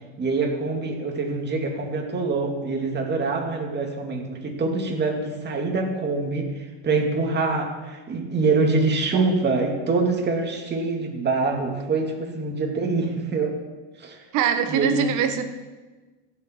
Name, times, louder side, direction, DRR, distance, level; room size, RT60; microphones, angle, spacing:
voice 1, 0.2-6.5 6.8-13.6 14.0-14.2 14.7-15.2, right 3 dB, 30° right, 1 dB, 2.2 m, -25 dB
voice 2, 14.3-15.5, right 8 dB, 55° right, 8 dB, 1.3 m, -23 dB
16.0 x 6.9 x 4.5 m, 1.2 s
supercardioid pair, 120°, 35 cm